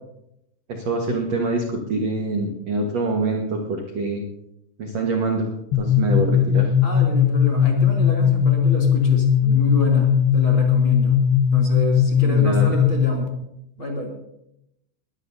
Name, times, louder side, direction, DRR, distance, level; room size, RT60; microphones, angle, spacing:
voice 1, 0.7-4.2 4.8-5.5 5.8-6.7 12.2-12.8, right 2 dB, 70° right, 1 dB, 1.6 m, -25 dB
sound 1, 5.7-13.3, left 8 dB, 70° left, 3.2 m, -18 dB
voice 2, 6.8-11.2 11.5-13.3 13.8-14.1, left 1 dB, 35° left, -1 dB, 2.9 m, -29 dB
22.0 x 14.5 x 2.7 m, 0.81 s
omnidirectional pair, 5.3 m